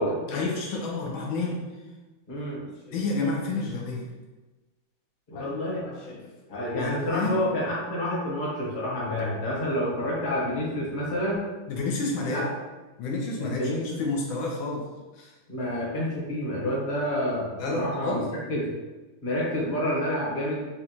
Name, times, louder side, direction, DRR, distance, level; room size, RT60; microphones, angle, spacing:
voice 1, 0.3-1.6 2.9-4.1 5.3-5.5 5.8-7.4 11.7-12.4 13.0-14.8 15.1-15.3 17.6-18.3, left 3 dB, 80° left, -1 dB, 1.5 m, -30 dB
voice 2, 2.3-2.6 5.3-5.8 6.5-11.4 12.2-12.5 13.4-14.0 15.5-18.7 19.2-20.6, equal, 30° left, -6 dB, 1.1 m, -28 dB
5.4 x 2.4 x 2.9 m, 1.2 s
omnidirectional pair, 2.2 m